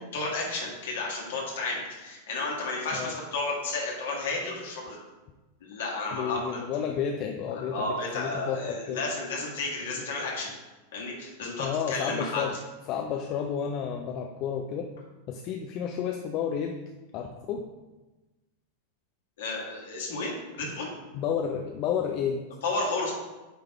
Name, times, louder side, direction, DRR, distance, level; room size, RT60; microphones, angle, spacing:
voice 1, 0.0-5.0 5.6-6.6 7.5-10.5 10.9-12.4 19.4-20.9 22.6-23.1, left 3 dB, 60° left, -2 dB, 1.7 m, -32 dB
voice 2, 6.1-9.0 11.6-12.5 12.9-14.9 15.3-16.8 17.1-17.6 21.1-22.5, left 7 dB, 40° left, 4 dB, 0.4 m, -31 dB
9.3 x 3.3 x 3.3 m, 1.1 s
figure-of-eight pair, 90°, 0 cm